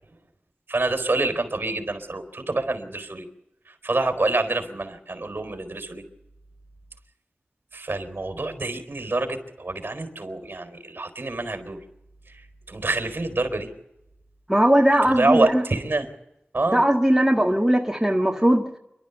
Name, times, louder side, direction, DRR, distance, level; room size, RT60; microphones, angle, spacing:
voice 1, 0.7-3.3 3.7-6.0 7.7-11.8 12.3-13.7 15.0-16.1 16.5-16.8, right 2 dB, 60° right, 7 dB, 4.3 m, -27 dB
voice 2, 14.5-15.6 16.7-18.7, right 1 dB, 10° right, 1 dB, 1.8 m, -19 dB
29.0 x 12.5 x 7.1 m, 0.88 s
wide cardioid pair, 60°, 4 cm